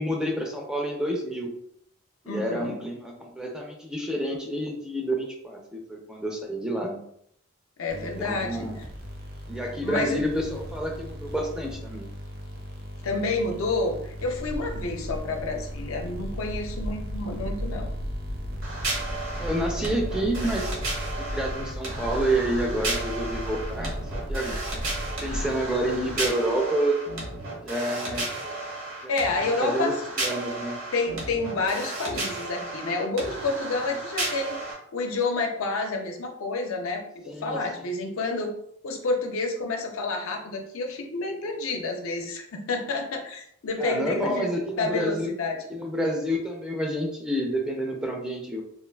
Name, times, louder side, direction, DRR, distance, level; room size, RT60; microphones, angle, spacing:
voice 1, 0.0-1.5 2.2-7.0 7.9-8.8 9.5-12.1 19.4-20.8 21.2-24.6 25.2-27.0 27.6-28.3 29.0-30.8 37.3-37.9 43.8-45.3 45.7-48.6, right 1 dB, 5° right, 0 dB, 0.4 m, -29 dB
voice 2, 2.3-2.8 7.8-8.7 9.8-10.2 13.0-17.9 29.1-30.0 30.9-34.6 34.9-38.5 38.8-44.5 44.8-45.6, left 3 dB, 80° left, 3 dB, 0.5 m, -29 dB
sound 1, 7.9-26.7, equal, 45° right, 0.6 m, -40 dB
sound 2, 14.3-25.5, equal, 90° right, 0.5 m, -35 dB
sound 3, 18.6-34.7, right 2 dB, 70° right, 0.9 m, -34 dB
3.2 x 2.3 x 2.2 m, 0.70 s
head